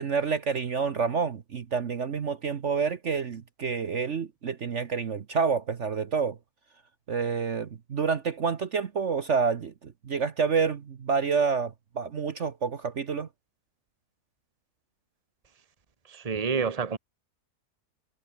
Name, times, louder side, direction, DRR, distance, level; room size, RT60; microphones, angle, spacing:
voice 1, 0.0-6.4 7.1-13.3, right 5 dB, 50° right, 1.3 m, -28 dB
voice 2, 16.1-17.0, right 5 dB, 25° right, 1.4 m, -28 dB
omnidirectional pair, 1.7 m